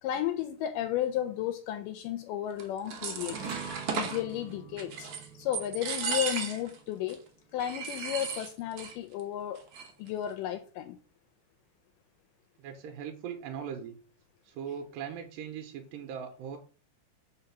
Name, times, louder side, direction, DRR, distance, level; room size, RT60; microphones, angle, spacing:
voice 1, 0.0-3.4 3.9-5.1 5.4-7.2 7.5-9.6 10.0-11.0, left 11 dB, 80° left, 2.0 m, -33 dB
sound 1, 2.6-4.2 4.8-5.3 5.5-6.8 7.1-7.2 7.6-8.9 9.2-9.3 9.6-10.1, right 6 dB, 65° right, 1.6 m, -35 dB
sound 2, 3.2-7.9, right 5 dB, 30° right, 2.1 m, -45 dB
voice 2, 12.6-14.0 14.4-16.6, right 8 dB, 85° right, 2.4 m, -39 dB
4.9 x 3.9 x 5.7 m
omnidirectional pair, 4.0 m